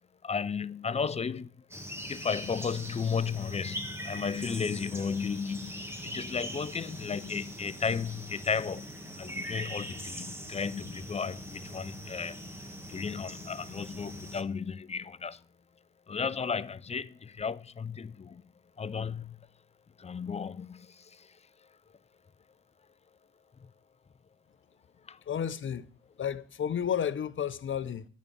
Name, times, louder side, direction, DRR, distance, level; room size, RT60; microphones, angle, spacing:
voice 1, 0.2-1.5 2.1-8.9 9.2-12.4 12.9-15.4 16.1-18.4 18.8-19.4 20.0-21.3 25.1-25.2, left 6 dB, 20° left, 0.5 m, -34 dB
sound 1, 1.7-14.4, equal, 10° right, 1.5 m, -41 dB
voice 2, 25.3-25.9 26.2-28.0, left 8 dB, 40° left, 0.8 m, -32 dB
10.5 x 5.1 x 8.4 m
cardioid pair, 90°, 30 cm